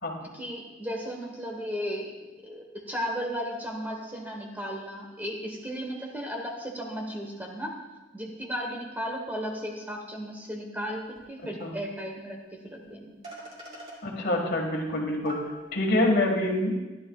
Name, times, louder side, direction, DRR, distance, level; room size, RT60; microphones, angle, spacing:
voice 1, 0.3-7.8 8.1-13.1, equal, 10° right, 0 dB, 1.1 m, -35 dB
sound 1, 11.2-11.3 11.6-11.7 12.8-12.9 13.2-14.0 14.9-15.0 15.3-16.0, equal, 30° right, 2.7 m, -42 dB
voice 2, 14.0-15.3 15.7-16.8, left 1 dB, 55° left, 1 dB, 1.6 m, -26 dB
14.5 x 11.0 x 2.3 m, 1.1 s
head